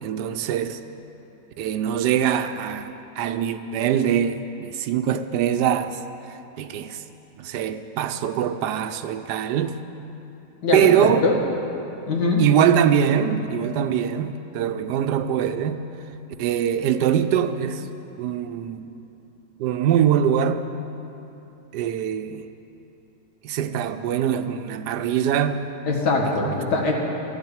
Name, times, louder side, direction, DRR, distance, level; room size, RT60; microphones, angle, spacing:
voice 1, 0.0-0.8 1.6-2.9 3.2-6.0 6.6-7.0 7.4-9.7 10.7-11.2 12.4-15.8 16.4-17.8 18.2-18.9 19.6-20.6 21.7-22.5 23.4-25.7 26.3-26.6, right 9 dB, 80° right, 9 dB, 1.2 m, -23 dB
voice 2, 12.1-12.4 25.9-26.9, left 3 dB, 85° left, 0 dB, 2.2 m, -22 dB
12.5 x 7.4 x 9.7 m, 3.0 s
omnidirectional pair, 1.7 m